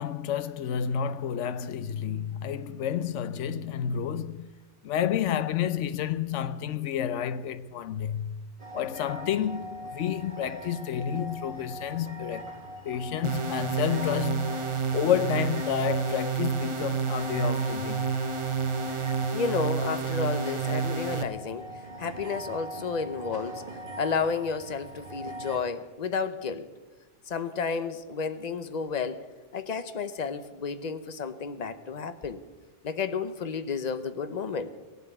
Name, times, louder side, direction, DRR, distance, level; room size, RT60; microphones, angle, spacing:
voice 1, 0.0-4.5 4.8-8.5 8.7-12.5 12.8-18.1, left 9 dB, 80° left, 1.0 m, -30 dB
sound 1, 8.6-25.6, equal, 45° right, 2.0 m, -41 dB
sound 2, 13.2-21.2, right 5 dB, 30° right, 0.8 m, -29 dB
voice 2, 19.3-21.7 22.0-23.6 24.0-26.7 27.3-29.2 29.5-32.4 32.8-34.7, left 5 dB, 40° left, 0.9 m, -31 dB
17.5 x 8.2 x 8.9 m
omnidirectional pair, 1.2 m